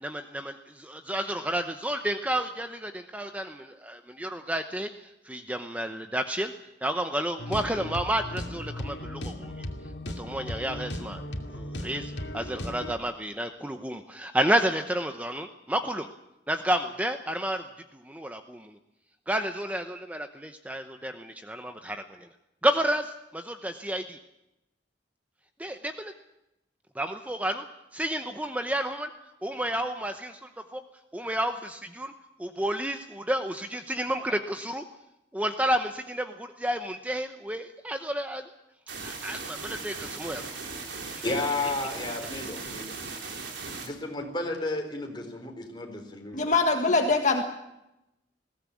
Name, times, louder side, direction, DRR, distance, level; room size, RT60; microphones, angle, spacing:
voice 1, 0.0-6.5 6.8-9.6 10.1-11.2 11.5-16.1 16.5-17.6 18.0-18.7 19.3-22.3 22.6-24.2 25.6-26.1 27.0-27.6 27.9-29.1 29.4-30.8 31.1-32.1 32.4-34.8 35.3-38.5 39.0-40.5 41.3-41.4, right 1 dB, 10° right, 7 dB, 0.9 m, -31 dB
sound 1, 7.4-13.0, left 1 dB, 70° left, 2.6 m, -36 dB
sound 2, 38.9-43.9, right 4 dB, 80° right, 3.7 m, -38 dB
voice 2, 41.2-43.0 43.8-46.5, left 2 dB, 25° left, 3 dB, 4.1 m, -32 dB
voice 3, 46.3-47.4, left 3 dB, 40° left, 4 dB, 1.7 m, -23 dB
21.0 x 16.5 x 8.5 m, 0.90 s
head